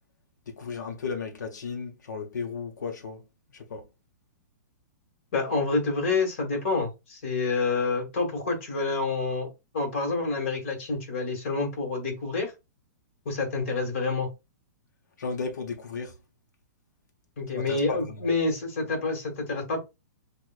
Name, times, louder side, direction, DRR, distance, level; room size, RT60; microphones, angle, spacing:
voice 1, 0.5-3.2 3.5-3.9 15.2-16.2 17.5-18.3, left 4 dB, 90° left, 0.9 m, -34 dB
voice 2, 5.3-9.5 9.7-12.5 13.2-14.3 17.4-19.8, left 3 dB, 45° left, 1.6 m, -28 dB
6.3 x 2.5 x 2.4 m
hypercardioid pair, 175°, 9 cm